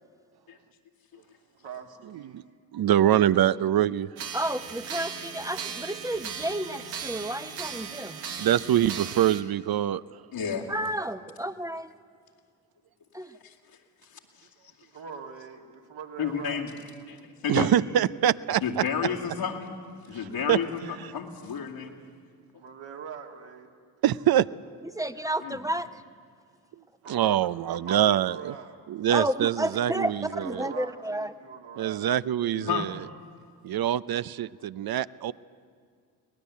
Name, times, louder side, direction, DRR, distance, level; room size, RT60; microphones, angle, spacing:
voice 1, 1.6-2.5 3.0-3.4 14.9-16.6 22.4-23.7 27.0-28.8 29.9-32.0, right 6 dB, 65° right, 2 dB, 2.5 m, -42 dB
voice 2, 2.7-4.1 8.4-10.0 17.5-18.8 20.5-20.6 24.0-24.5 27.1-28.5 28.9-30.7 31.8-33.0 33.6-35.3, right 11 dB, 50° right, 17 dB, 0.7 m, -24 dB
sound 1, 4.2-9.4, right 6 dB, 90° right, 1.3 m, -37 dB
voice 3, 4.3-8.2 10.7-11.9 13.1-13.3 24.9-25.9 29.1-30.1 30.4-31.3, right 1 dB, 5° right, 11 dB, 0.9 m, -31 dB
voice 4, 10.3-10.7 13.4-13.6 14.0-14.5 16.2-16.8 17.1-17.8 18.6-19.8 20.1-21.9 25.4-25.6 32.5-32.9, left 7 dB, 70° left, -6 dB, 2.5 m, -31 dB
23.0 x 18.5 x 8.3 m, 2.1 s
hypercardioid pair, 40°, 48 cm